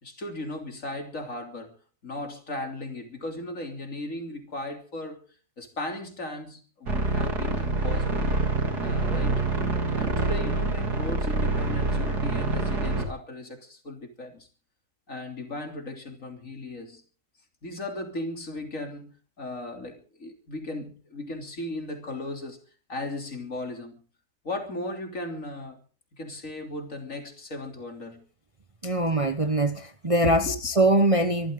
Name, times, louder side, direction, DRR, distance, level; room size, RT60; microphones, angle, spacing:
voice 1, 0.0-1.7 2.0-5.2 5.6-8.3 8.8-9.4 9.9-14.5 15.1-17.0 17.6-22.6 22.9-24.0 24.4-25.8 26.2-28.2 30.2-30.6, left 2 dB, 55° left, 3.6 m, -36 dB
sound 1, 6.9-13.0, right 2 dB, 90° right, 3.5 m, -26 dB
voice 2, 28.8-31.5, right 1 dB, 25° right, 1.0 m, -23 dB
25.5 x 14.0 x 3.8 m
omnidirectional pair, 1.6 m